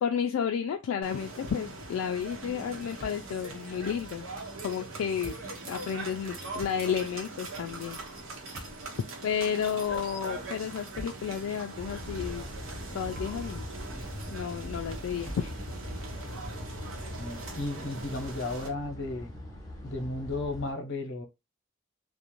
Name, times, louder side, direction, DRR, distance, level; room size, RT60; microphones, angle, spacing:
voice 1, 0.0-4.3 4.6-5.4 5.7-8.0 9.2-12.4 12.9-13.7 14.3-15.5, left 7 dB, 80° left, 0.3 m, -32 dB
sound 1, 1.0-18.7, right 2 dB, 80° right, 0.8 m, -42 dB
Thump thud, 1.5-2.0 2.2-2.3 2.8-3.5 3.8-4.0 5.0-5.6 6.5-7.2 8.4-9.3 10.7-11.4 12.1-12.3 12.8-13.6 13.9-14.0 15.2-15.7, equal, 50° right, 1.0 m, -45 dB
sound 2, 11.7-20.7, left 1 dB, 20° left, 0.7 m, -41 dB
voice 2, 17.2-19.3 19.8-21.2, left 2 dB, 60° left, 0.7 m, -34 dB
2.5 x 2.0 x 2.9 m
head